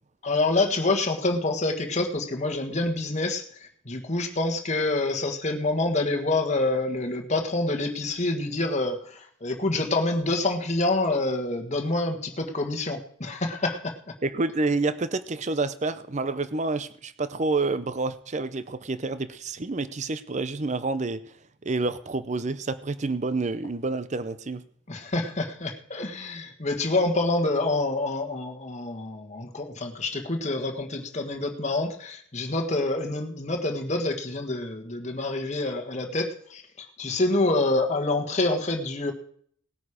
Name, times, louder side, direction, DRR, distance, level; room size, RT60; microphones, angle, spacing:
voice 1, 0.2-14.1 24.9-39.1, left 2 dB, 35° left, 4 dB, 1.4 m, -27 dB
voice 2, 14.2-21.2 21.6-24.6, right 3 dB, 35° right, 13 dB, 0.6 m, -28 dB
18.5 x 9.2 x 5.0 m, 0.63 s
head